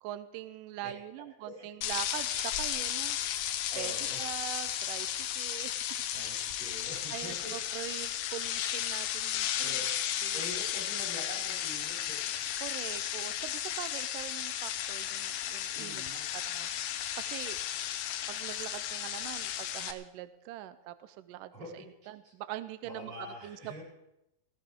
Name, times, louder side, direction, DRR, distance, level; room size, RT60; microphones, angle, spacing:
voice 1, 0.0-3.2 3.8-3.9 4.2-5.8 6.3-6.5 7.1-9.8 10.2-10.4 12.6-16.0 16.3-17.6 18.3-23.1 23.4-23.8, right 13 dB, 90° right, 12 dB, 1.9 m, -43 dB
sound 1, 1.8-19.9, left 11 dB, 75° left, 2.5 m, -34 dB
voice 2, 3.7-4.3 6.1-7.5 9.6-12.4 15.7-16.3 21.5-21.8 22.2-22.3 22.8-23.8, equal, 40° right, -5 dB, 6.1 m, -45 dB
18.0 x 16.5 x 3.6 m, 0.88 s
omnidirectional pair, 4.5 m